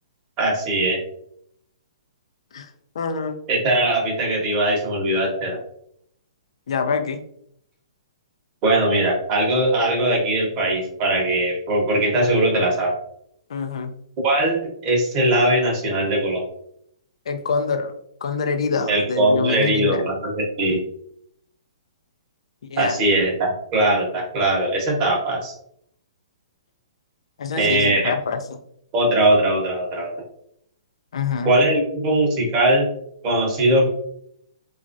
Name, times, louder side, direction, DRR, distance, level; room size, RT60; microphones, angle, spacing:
voice 1, 0.4-1.0 3.5-5.6 8.6-12.9 14.2-16.4 18.9-20.8 22.8-25.5 27.6-28.1 28.9-30.1 31.4-32.8 33.2-33.9, right 1 dB, 25° right, -1 dB, 0.9 m, -20 dB
voice 2, 3.0-3.4 6.7-7.2 13.5-13.9 17.3-17.9 18.2-20.0 22.7-23.0 27.4-28.4 31.1-31.5, left 5 dB, 70° left, 7 dB, 0.4 m, -25 dB
3.0 x 2.4 x 2.5 m, 0.71 s
hypercardioid pair, 155°, 3 cm